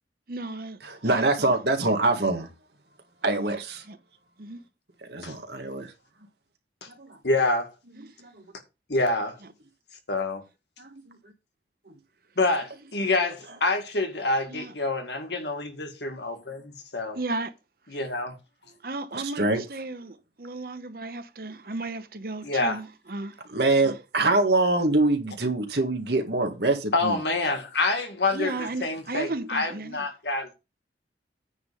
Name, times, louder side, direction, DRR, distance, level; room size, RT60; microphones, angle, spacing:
voice 1, 0.3-1.6 3.3-3.6 3.9-4.0 4.4-4.6 7.9-8.1 14.5-14.7 17.1-17.5 18.8-23.4 23.8-24.0 28.3-30.0, right 2 dB, 55° right, 0.9 m, -35 dB
voice 2, 0.8-2.5 3.2-3.8 5.0-5.9 7.0-7.2 8.2-8.4 10.8-11.2 18.7-18.8 19.1-19.6 23.5-27.2, right 2 dB, 70° right, 1.8 m, -25 dB
voice 3, 7.2-7.7 8.9-9.4 10.1-10.4 12.4-17.2 17.9-18.4 22.4-22.8 26.9-30.5, left 2 dB, 75° left, 1.8 m, -27 dB
9.4 x 3.8 x 6.8 m
head